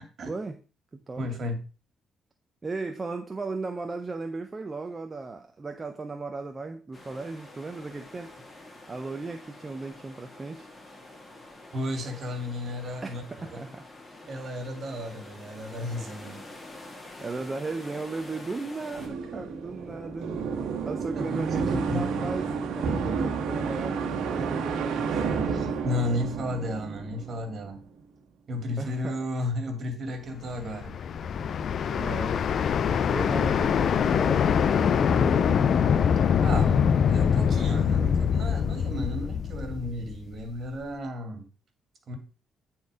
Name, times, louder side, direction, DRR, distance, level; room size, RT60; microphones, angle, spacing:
voice 1, 0.3-0.6 0.9-1.2 2.6-8.3 8.9-10.7 13.0-13.8 14.4-14.5 17.2-20.5 20.8-25.8 28.8-29.2 31.9-32.5 33.1-35.6, right 3 dB, 25° right, 0.9 m, -36 dB
voice 2, 1.2-1.6 11.7-13.7 14.3-16.4 21.2-22.1 25.5-27.8 28.5-31.0 36.4-41.5 42.1-42.2, left 1 dB, 50° right, 2.5 m, -33 dB
sound 1, 6.9-19.1, left 2 dB, 20° left, 2.3 m, -47 dB
sound 2, 19.0-27.8, right 5 dB, 80° right, 1.4 m, -30 dB
sound 3, 30.5-40.5, left 7 dB, 60° left, 0.5 m, -24 dB
9.3 x 4.5 x 4.9 m
cardioid pair, 90°, 0 cm